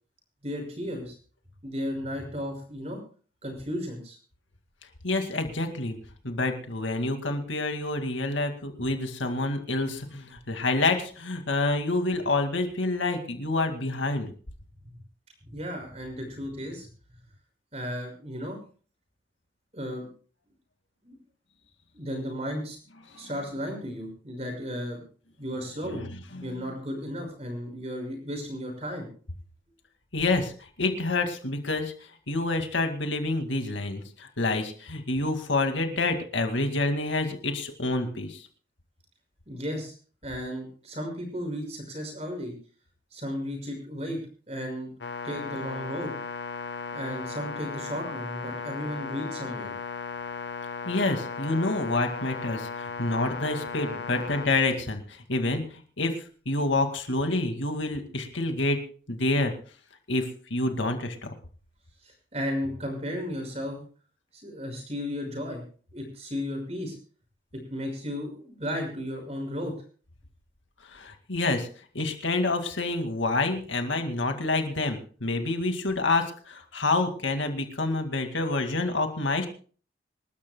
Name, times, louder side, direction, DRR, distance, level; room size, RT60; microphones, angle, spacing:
voice 1, 0.4-1.2 1.6-3.0 3.4-4.2 14.8-14.9 15.5-16.9 17.7-18.6 19.7-20.1 21.0-21.2 21.9-22.8 23.2-25.0 25.4-26.0 26.4-29.1 39.5-39.9 40.2-42.5 43.1-44.2 44.5-44.9 45.2-46.1 46.9-49.7 62.0-63.8 64.3-65.6 65.9-66.9 67.7-69.7, equal, 35° right, 3 dB, 5.9 m, -34 dB
voice 2, 5.0-6.0 6.2-14.3 23.1-23.3 26.0-26.1 26.3-26.7 30.1-30.5 30.8-31.9 32.3-38.5 50.9-58.8 59.1-59.5 60.1-61.3 70.9-71.7 71.9-79.5, left 2 dB, 85° left, 5 dB, 2.2 m, -28 dB
sound 1, 45.0-54.5, left 5 dB, 70° left, 1.0 m, -36 dB
26.5 x 12.5 x 2.3 m, 0.40 s
head